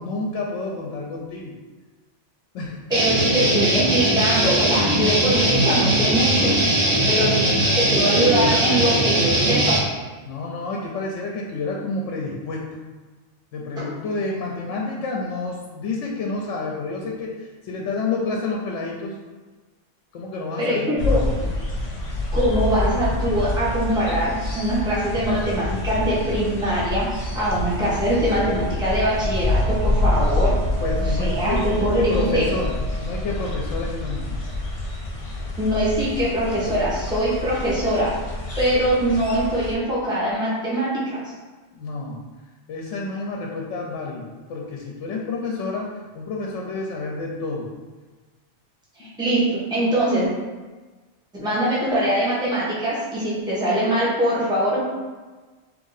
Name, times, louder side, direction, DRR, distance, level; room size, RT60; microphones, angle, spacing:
voice 1, 0.0-1.5 2.5-2.8 7.0-7.5 8.0-8.1 10.3-12.8 13.5-19.2 20.1-21.5 30.8-34.4 41.7-42.2 42.7-47.7 49.0-49.2, left 3 dB, 75° left, -1 dB, 0.9 m, -29 dB
voice 2, 2.9-6.5 7.1-7.3 7.8-9.8 13.8-13.9 20.6-21.2 22.3-27.1 27.3-30.6 31.0-32.5 35.6-38.1 38.6-41.3 49.0-49.4 49.7-50.3 51.3-54.8, right 1 dB, 5° right, -9 dB, 1.1 m, -22 dB
Guitar, 2.9-9.8, right 1 dB, 30° right, 0.7 m, -20 dB
sound 1, 21.0-39.7, left 2 dB, 45° left, 0.4 m, -26 dB
sound 2, 28.2-33.3, right 5 dB, 75° right, 1.0 m, -35 dB
3.6 x 3.1 x 4.0 m, 1.3 s
omnidirectional pair, 1.3 m